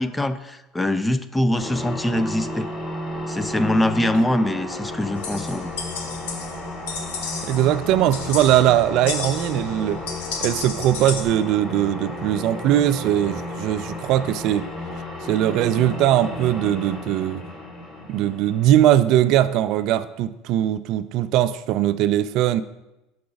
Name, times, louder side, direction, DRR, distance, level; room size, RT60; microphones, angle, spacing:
voice 1, 0.0-2.7 3.3-5.8, left 1 dB, 10° left, 13 dB, 0.4 m, -23 dB
sound 1, 1.6-19.9, left 1 dB, 25° left, 1.7 m, -33 dB
sound 2, 5.2-11.2, left 5 dB, 90° left, 0.9 m, -33 dB
voice 2, 7.4-10.0 10.4-14.7 15.3-17.4 18.1-22.6, right 12 dB, 65° right, 13 dB, 0.3 m, -20 dB
6.0 x 4.8 x 5.1 m, 0.97 s
supercardioid pair, 95°, 0 cm